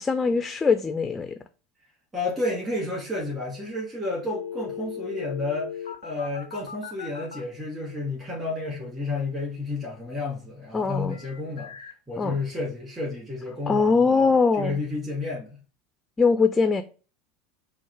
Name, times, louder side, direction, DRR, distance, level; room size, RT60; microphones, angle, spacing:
voice 1, 0.0-1.4 10.7-11.2 12.2-12.4 13.7-14.8 16.2-16.8, left 4 dB, 20° left, 0.4 m, -22 dB
voice 2, 2.1-11.7 12.1-14.3 14.6-15.6, left 2 dB, 20° right, 2.0 m, -31 dB
sound 1, 4.3-7.4 11.1-11.9, left 8 dB, 85° left, 0.5 m, -37 dB
4.5 x 2.1 x 4.5 m
hypercardioid pair, 80°, 0 cm